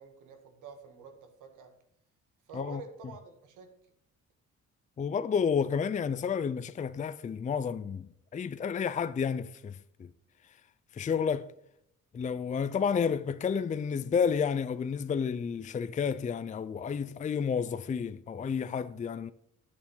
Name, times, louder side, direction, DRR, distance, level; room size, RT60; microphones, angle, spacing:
voice 1, 0.0-1.7 2.5-3.7, right 5 dB, 85° right, 1.7 m, -48 dB
voice 2, 5.0-10.1 10.9-11.5 12.1-19.3, left 6 dB, 25° left, 0.4 m, -31 dB
8.7 x 7.2 x 5.5 m
cardioid pair, 90°, 30 cm